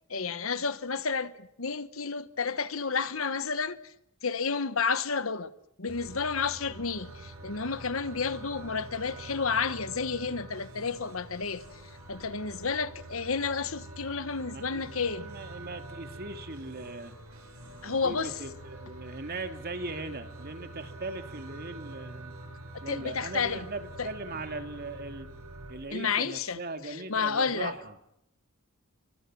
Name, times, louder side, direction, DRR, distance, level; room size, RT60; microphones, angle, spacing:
voice 1, 0.1-3.9 4.2-5.5 5.8-11.6 12.1-15.3 17.8-18.3 22.9-23.7 24.0-24.1 25.9-27.7, left 5 dB, 70° left, 1.2 m, -31 dB
sound 1, 5.9-25.7, right 2 dB, 85° right, 7.3 m, -45 dB
voice 2, 14.5-17.1 17.8-22.3 22.8-25.3 25.7-28.0, right 2 dB, 45° right, 2.4 m, -39 dB
29.0 x 24.0 x 6.2 m
head